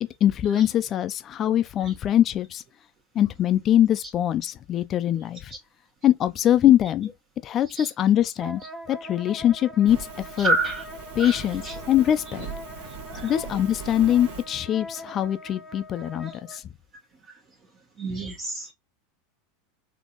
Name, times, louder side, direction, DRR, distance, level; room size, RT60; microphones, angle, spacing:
voice 1, 0.2-2.6 3.1-5.5 6.0-7.1 7.4-8.6 8.9-10.0 10.4-10.5 11.2-11.6 11.9-12.5 13.2-16.6, left 11 dB, 40° left, 0.6 m, -22 dB
Wind instrument woodwind instrument, 8.4-16.6, equal, ahead, 0.7 m, -42 dB
Fire, 9.9-14.5, right 5 dB, 70° right, 1.9 m, -40 dB
voice 2, 10.4-10.8 11.2-11.7 13.1-13.4 18.0-18.7, right 3 dB, 40° right, 1.5 m, -28 dB
4.2 x 3.0 x 3.0 m
hypercardioid pair, 100°, 0 cm